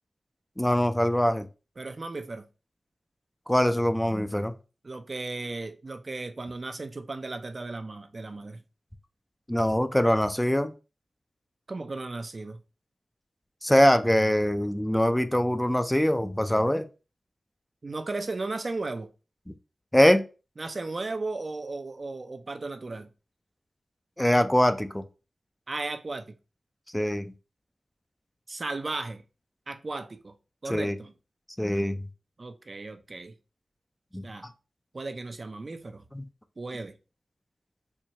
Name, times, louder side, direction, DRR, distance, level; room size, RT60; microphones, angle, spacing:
voice 1, 0.6-1.5 3.5-4.5 9.5-10.7 13.6-16.8 19.5-19.6 19.9-20.2 24.2-25.0 26.9-27.3 30.7-31.0 31.6-32.0 34.1-34.2 36.1-36.2, equal, 10° left, 0.4 m, -23 dB
voice 2, 1.8-2.5 4.8-8.6 11.7-12.6 17.8-19.1 20.6-23.1 25.7-26.3 28.5-29.2 29.7-30.3 30.6-31.1 32.4-33.3 34.2-34.5 34.9-36.0 36.6-36.9, right 3 dB, 50° right, 0.4 m, -35 dB
4.4 x 2.2 x 2.8 m
cardioid pair, 50°, 0 cm